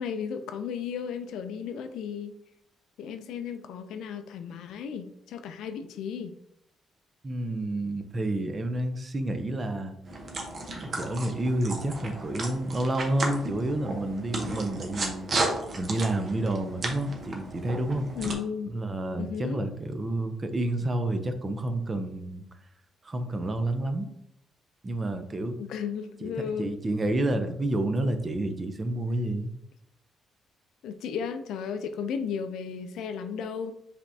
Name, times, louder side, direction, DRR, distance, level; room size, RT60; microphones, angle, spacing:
voice 1, 0.0-2.4 3.0-6.3 18.2-18.8 19.2-19.6 25.6-26.7 30.8-33.7, left 7 dB, 85° left, 9 dB, 0.4 m, -34 dB
voice 2, 7.2-9.9 10.8-15.3 15.7-18.1 18.7-22.4 23.0-24.1 24.8-25.6 26.2-29.5, right 1 dB, 30° right, 8 dB, 0.6 m, -29 dB
sound 1, 10.1-18.3, right 2 dB, 45° right, 1.0 m, -34 dB
5.2 x 3.5 x 2.7 m, 0.77 s
cardioid pair, 90°, 0 cm